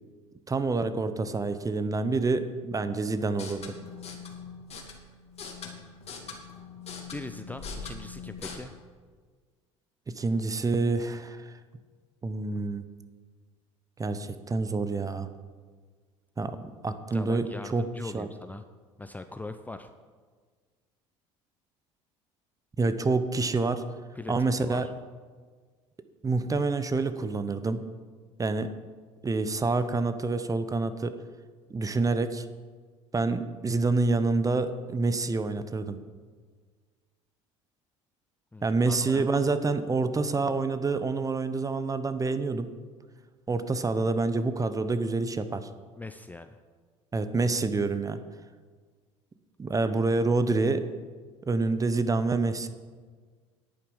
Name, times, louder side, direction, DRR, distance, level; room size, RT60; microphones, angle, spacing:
voice 1, 0.5-3.7 10.1-11.5 12.2-12.8 14.0-15.3 16.4-17.9 18.1-18.3 22.8-23.9 24.3-24.9 26.2-27.8 28.4-28.7 29.2-31.2 31.7-32.5 33.1-36.0 38.6-42.7 43.5-45.7 47.1-48.2 49.6-50.8 51.5-52.7, right 3 dB, 20° right, 11 dB, 0.9 m, -27 dB
sound 1, 3.3-8.5, left 5 dB, 40° left, 2.3 m, -42 dB
voice 2, 7.1-8.7 17.1-18.6 19.0-19.9 24.1-24.9 38.5-39.4 46.0-46.6, left 2 dB, 10° left, 8 dB, 0.6 m, -41 dB
10.5 x 8.6 x 5.5 m, 1.5 s
hypercardioid pair, 70°, 16 cm